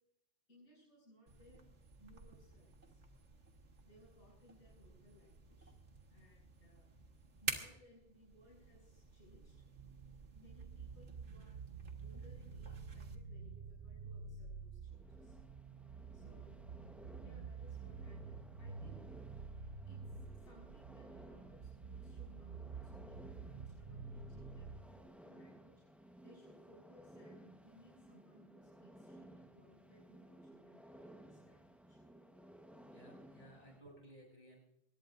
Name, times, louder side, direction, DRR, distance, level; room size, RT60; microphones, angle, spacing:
voice 1, 0.5-1.7 2.0-3.0 3.8-5.7 6.1-6.9 7.4-9.6 10.3-11.6 12.0-15.4 16.1-16.6 17.2-19.0 19.9-25.7 26.2-32.0, left 1 dB, 75° left, -5 dB, 6.9 m, -65 dB
sound 1, 1.3-13.1, right 4 dB, 85° right, 1.9 m, -50 dB
sound 2, 8.5-24.8, right 5 dB, 55° right, 0.9 m, -49 dB
sound 3, 14.9-33.8, right 1 dB, ahead, 1.1 m, -58 dB
voice 2, 32.8-34.6, right 1 dB, 45° left, -1 dB, 6.7 m, -59 dB
22.5 x 20.5 x 2.6 m, 0.79 s
omnidirectional pair, 1.2 m